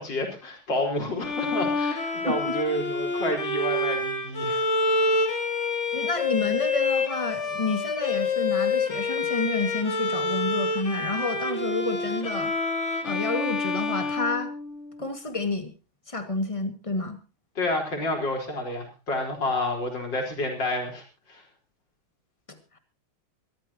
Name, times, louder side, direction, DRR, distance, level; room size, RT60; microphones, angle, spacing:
voice 1, 0.0-4.6 17.6-21.0 21.3-21.4, left 1 dB, 60° left, 1 dB, 5.1 m, -29 dB
Bowed string instrument, 1.2-15.1, left 3 dB, 35° left, 2.1 m, -27 dB
voice 2, 2.3-2.6 5.9-12.5 13.0-14.5 15.0-15.7 16.1-17.2 22.5-22.6, left 3 dB, 15° left, 7 dB, 1.9 m, -29 dB
24.5 x 13.5 x 2.9 m, 0.30 s
omnidirectional pair, 2.3 m